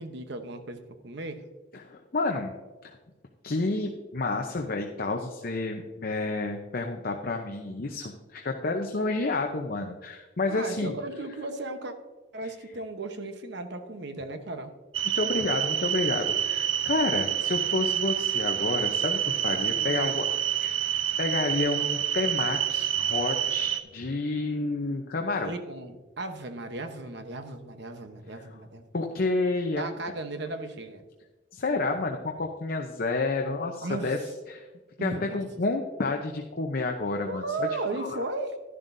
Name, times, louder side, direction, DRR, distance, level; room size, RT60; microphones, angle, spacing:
voice 1, 0.0-1.4 10.5-11.9 12.3-14.7 19.8-20.2 25.4-28.8 29.8-31.0 33.8-34.2 35.0-35.4 37.3-38.6, right 2 dB, 65° right, 7 dB, 1.0 m, -35 dB
voice 2, 1.7-2.5 2.8-3.0 3.4-10.9 15.1-20.3 20.6-20.8 21.2-25.5 28.9-29.9 31.5-34.2 34.5-34.7 35.0-37.7 38.0-38.2, left 3 dB, 50° left, 3 dB, 0.7 m, -30 dB
sound 1, 14.9-23.8, right 10 dB, 90° right, 0.6 m, -28 dB
12.0 x 11.0 x 2.7 m, 1.2 s
head